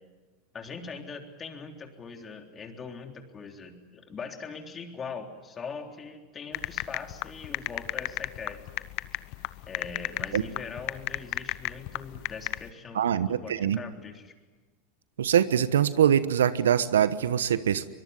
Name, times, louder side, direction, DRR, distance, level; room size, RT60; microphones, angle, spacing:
voice 1, 0.5-8.9 9.7-14.3, left 5 dB, 25° left, 4 dB, 3.6 m, -41 dB
sound 1, 6.5-12.7, left 21 dB, 55° left, 0.9 m, -34 dB
voice 2, 12.9-13.8 15.2-17.8, right 9 dB, 85° right, 15 dB, 1.1 m, -23 dB
24.0 x 22.0 x 9.7 m, 1.3 s
hypercardioid pair, 95°, 0 cm